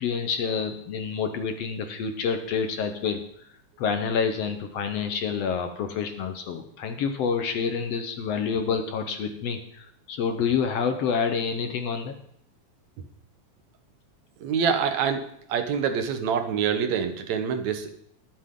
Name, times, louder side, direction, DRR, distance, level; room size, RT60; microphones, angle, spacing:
voice 1, 0.0-3.2 3.8-12.1, left 6 dB, 65° left, 7 dB, 1.7 m, -28 dB
voice 2, 14.4-15.2 15.5-17.9, right 7 dB, 70° right, 8 dB, 2.2 m, -25 dB
21.5 x 7.7 x 3.7 m, 0.69 s
omnidirectional pair, 3.5 m